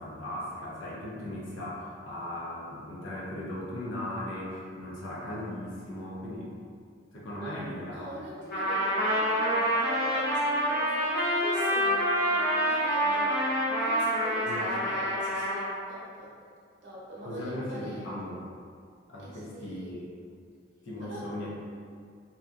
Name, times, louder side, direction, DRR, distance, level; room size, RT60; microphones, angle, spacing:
voice 1, 0.0-6.5 7.1-8.1 14.5-15.0 17.2-18.4 19.1-20.1 20.8-21.6, left 1 dB, 90° left, -5 dB, 0.7 m, -38 dB
voice 2, 7.4-13.4 13.8-16.3 16.8-18.0 19.2-20.0 21.0-21.3, right 1 dB, 65° right, -7 dB, 0.7 m, -43 dB
Trumpet, 8.5-15.7, equal, 50° left, 1.1 m, -27 dB
2.8 x 2.3 x 2.5 m, 2.2 s
head